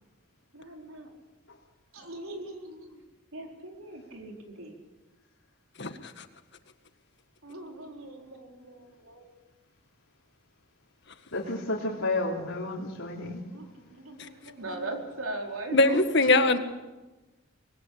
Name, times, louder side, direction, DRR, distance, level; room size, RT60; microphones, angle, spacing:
voice 1, 0.5-1.1 1.9-3.0 3.3-4.8 7.4-9.4 13.2-16.0 16.4-16.5, right 2 dB, 90° right, 2 dB, 4.5 m, -40 dB
voice 2, 5.8-6.2 15.7-16.6, left 2 dB, 55° left, 8 dB, 1.8 m, -22 dB
voice 3, 11.3-13.4, left 2 dB, 90° left, -5 dB, 3.5 m, -31 dB
25.5 x 20.5 x 8.7 m, 1.1 s
head